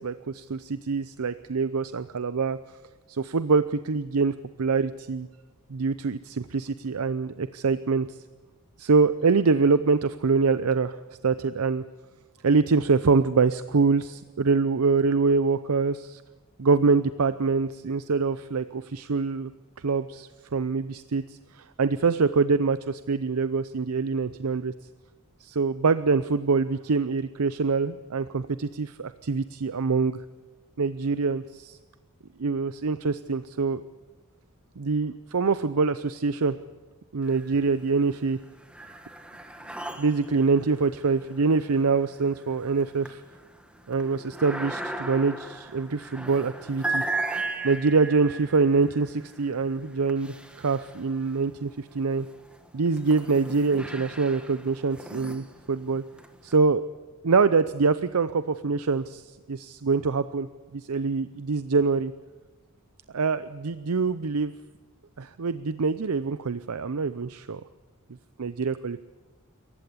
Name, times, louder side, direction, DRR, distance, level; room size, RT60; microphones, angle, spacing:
voice 1, 0.0-2.6 3.1-5.3 5.7-8.2 8.8-11.0 11.2-11.8 12.4-16.2 16.6-19.5 19.8-24.7 25.4-30.2 30.8-31.8 32.4-33.8 34.8-36.6 37.1-38.4 40.0-43.2 43.9-47.1 47.6-52.3 52.7-56.0 56.4-56.8 57.2-62.1 63.1-64.5 65.2-67.6 68.4-69.0, right 4 dB, 75° right, 13 dB, 0.6 m, -25 dB
sound 1, 37.2-37.9 38.2-51.4 52.1-56.5, right 2 dB, 5° right, 1.5 m, -37 dB
26.0 x 15.0 x 8.6 m, 1.2 s
head